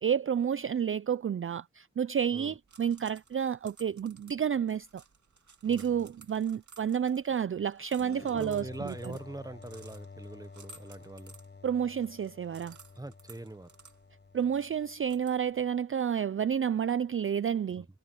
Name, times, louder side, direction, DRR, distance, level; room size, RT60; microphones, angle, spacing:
voice 1, 0.0-5.0 5.6-8.9 11.6-12.8 14.3-17.9, right 8 dB, 45° right, 0.4 m, -30 dB
sound 1, 2.5-15.7, right 4 dB, 75° right, 2.4 m, -58 dB
voice 2, 5.7-6.1 8.3-11.4 12.9-13.7 17.8-17.9, right 2 dB, 10° right, 1.1 m, -43 dB
sound 2, 8.0-15.4, left 4 dB, 35° left, 0.9 m, -50 dB
wide cardioid pair, 105°, 29 cm